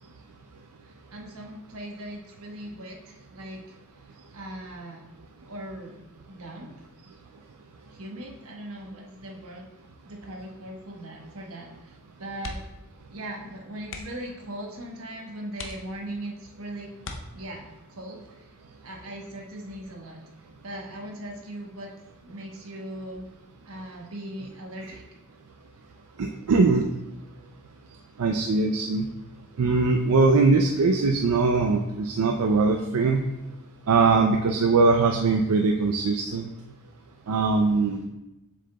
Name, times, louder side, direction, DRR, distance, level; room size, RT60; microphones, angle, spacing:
voice 1, 0.9-3.7 4.3-5.1 5.5-6.7 7.9-9.7 10.0-12.6 13.1-16.9 17.3-18.4 18.8-20.2 20.6-21.9 22.2-23.3 23.7-25.0, right 1 dB, 70° right, 1 dB, 1.1 m, -39 dB
sound 1, 12.4-12.9 13.2-13.4 13.8-14.3 14.9-15.0 15.5-16.3 17.0-17.8 19.3-19.7 20.0-20.1, left 3 dB, 60° left, 0.7 m, -40 dB
voice 2, 26.2-26.8 28.2-29.1 29.6-33.2 33.9-36.5 37.3-38.0, right 3 dB, 85° right, 4 dB, 0.5 m, -21 dB
7.7 x 6.4 x 2.2 m, 0.95 s
head